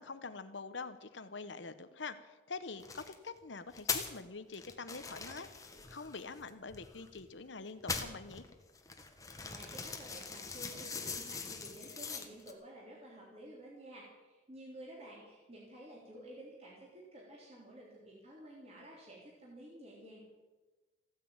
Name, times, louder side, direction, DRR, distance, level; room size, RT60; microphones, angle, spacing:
voice 1, 0.0-8.4, left 4 dB, 70° left, 11 dB, 1.1 m, -45 dB
Plastic Chips and Packaging, 2.8-3.1 3.7-4.2 4.5-7.3 7.7-12.5, left 5 dB, 15° left, 1.3 m, -42 dB
voice 2, 9.4-20.3, right 1 dB, 30° right, -4 dB, 3.6 m, -52 dB
15.5 x 9.7 x 8.9 m, 1.2 s
head